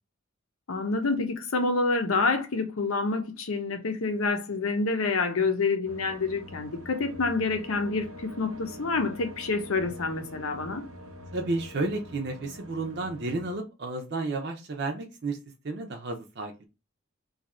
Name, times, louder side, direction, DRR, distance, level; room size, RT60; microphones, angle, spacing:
voice 1, 0.7-10.8, left 3 dB, 80° left, 0.7 m, -28 dB
sound 1, 5.8-13.6, left 1 dB, 80° right, 0.9 m, -45 dB
voice 2, 11.3-15.4 15.6-16.6, right 2 dB, 50° right, 0.5 m, -32 dB
2.7 x 2.4 x 4.2 m
head